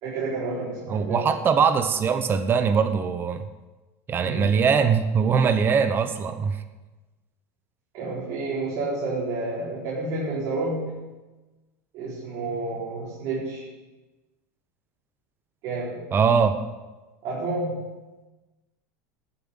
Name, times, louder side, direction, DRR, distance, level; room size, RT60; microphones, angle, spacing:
voice 1, 0.0-1.3 4.2-4.5 7.9-11.0 11.9-13.6 15.6-16.0 17.2-17.8, right 2 dB, 55° right, -6 dB, 4.2 m, -30 dB
voice 2, 0.9-3.5 4.1-6.6 16.1-16.6, right 6 dB, 25° right, 9 dB, 0.9 m, -22 dB
11.0 x 7.3 x 9.7 m, 1.2 s
supercardioid pair, 120°, 8 cm